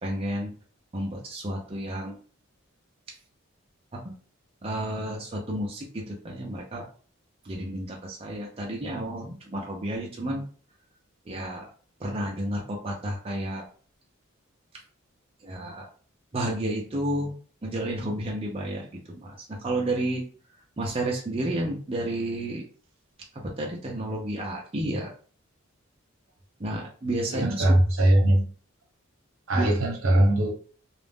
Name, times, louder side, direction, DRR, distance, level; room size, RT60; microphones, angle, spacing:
voice 1, 0.0-0.5 0.9-2.2 3.9-4.1 4.6-6.8 7.4-10.4 11.3-11.7 12.0-13.6 15.4-15.9 16.3-17.3 17.6-20.3 20.8-22.6 23.3-25.1 26.6-27.8 29.5-29.7, right 1 dB, 25° right, -1 dB, 0.4 m, -31 dB
voice 2, 27.3-28.4 29.5-30.5, right 1 dB, 80° right, 2 dB, 0.7 m, -21 dB
2.4 x 2.0 x 3.3 m, 0.42 s
head